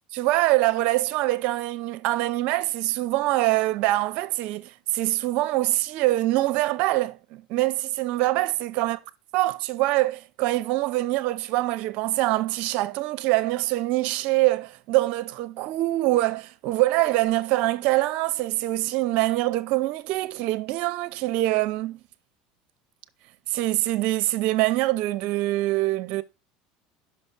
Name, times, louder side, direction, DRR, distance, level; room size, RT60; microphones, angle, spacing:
voice 1, 0.1-9.0 9.3-22.0 23.5-26.2, right 17 dB, 65° right, 0.7 m, -24 dB
5.8 x 5.3 x 5.9 m
supercardioid pair, 100°, 2 cm